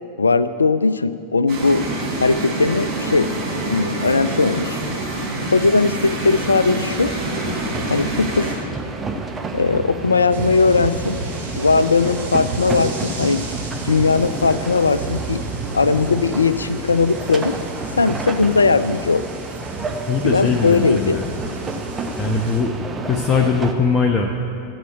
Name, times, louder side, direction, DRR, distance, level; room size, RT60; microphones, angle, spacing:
voice 1, 0.2-1.8 2.2-3.3 3.7-4.8 5.5-7.1 7.9-8.5 9.5-11.2 11.6-13.4 13.7-15.4 15.7-17.6 18.0-19.2 20.2-21.2, left 4 dB, 75° left, 15 dB, 0.4 m, -18 dB
sound 1, 1.5-8.5, right 2 dB, 45° right, 3.4 m, -26 dB
sound 2, 6.2-23.7, right 3 dB, 20° right, 1.0 m, -30 dB
sound 3, 10.3-22.6, right 4 dB, 65° right, 2.8 m, -34 dB
voice 2, 20.1-21.3 22.2-22.7 23.0-24.4, left 4 dB, 25° left, 1 dB, 0.9 m, -20 dB
13.5 x 8.0 x 8.3 m, 2.5 s
figure-of-eight pair, 90°, 0 cm